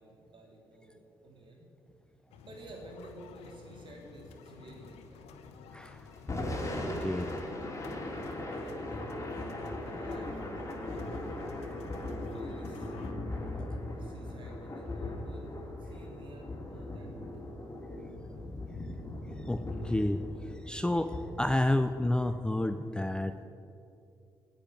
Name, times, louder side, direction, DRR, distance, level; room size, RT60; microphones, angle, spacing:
voice 1, 0.0-1.7 2.5-5.2 7.5-11.0 12.3-12.9 13.9-17.4, right 1 dB, 50° right, -1 dB, 3.3 m, -52 dB
sound 1, 2.3-13.1, left 5 dB, 75° left, 0.8 m, -52 dB
voice 2, 5.7-6.1 7.0-7.3 11.6-11.7 19.5-20.2 20.6-23.5, left 1 dB, 10° left, 10 dB, 0.5 m, -30 dB
Thunder / Rain, 6.1-22.4, left 1 dB, 30° left, 2.7 m, -39 dB
9.7 x 8.8 x 7.8 m, 2.6 s
hypercardioid pair, 40°, 11 cm